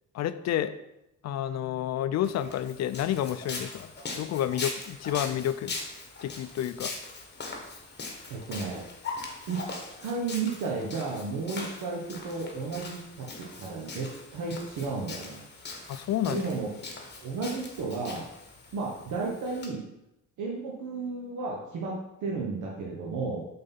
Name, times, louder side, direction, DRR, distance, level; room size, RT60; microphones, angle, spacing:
voice 1, 0.1-0.7 1.2-3.9 4.2-5.7 6.2-6.9 15.9-16.4, left 11 dB, 60° left, 12 dB, 0.4 m, -30 dB
Walk footsteps, 2.2-19.7, left 3 dB, 35° left, 1.4 m, -41 dB
voice 2, 8.3-8.9 9.5-9.6 10.0-15.4 16.3-16.7 17.2-18.3 18.7-19.9 20.4-23.4, right 4 dB, 80° right, -3 dB, 1.1 m, -33 dB
5.4 x 3.9 x 5.4 m, 0.88 s
cardioid pair, 90°, 30 cm